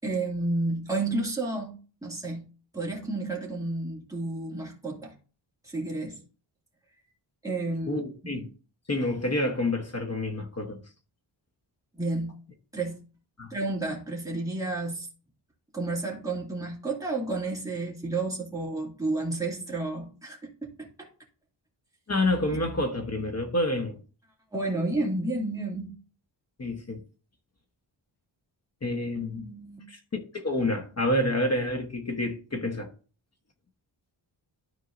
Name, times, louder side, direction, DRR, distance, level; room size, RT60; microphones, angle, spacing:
voice 1, 0.0-2.4 2.7-5.1 5.6-6.2 7.4-8.4 12.0-12.3 12.7-13.0 13.5-15.1 15.7-21.1 24.5-26.0 29.2-29.8, right 2 dB, 5° right, 2.2 m, -31 dB
voice 2, 7.9-8.5 8.9-10.8 13.4-13.5 22.1-24.0 26.6-27.0 28.8-29.4 29.9-32.9, left 1 dB, 35° left, 1.1 m, -28 dB
12.5 x 4.6 x 2.6 m
wide cardioid pair, 130°, 46 cm